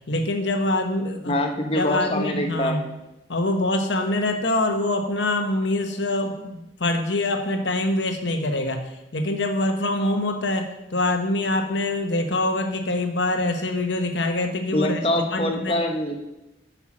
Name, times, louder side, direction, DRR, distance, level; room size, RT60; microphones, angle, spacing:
voice 1, 0.1-1.4 1.7-2.8 3.3-15.0 15.3-15.8, left 2 dB, 75° left, 5 dB, 1.1 m, -24 dB
voice 2, 1.2-2.8 14.7-16.3, left 1 dB, 30° left, 3 dB, 1.2 m, -25 dB
8.6 x 5.7 x 6.1 m, 0.94 s
head